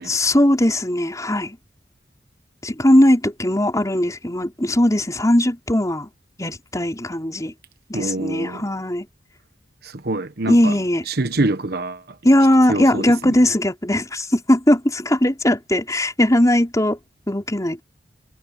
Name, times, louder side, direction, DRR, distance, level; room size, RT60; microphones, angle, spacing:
voice 1, 0.1-1.6 2.6-6.1 6.4-7.5 7.9-9.0 10.5-11.0 12.2-17.0 17.3-17.8, left 1 dB, 20° left, 4.8 m, -19 dB
voice 2, 7.9-8.6 9.8-10.7 11.1-12.0 12.7-13.0, right 2 dB, 60° right, 1.2 m, -25 dB
head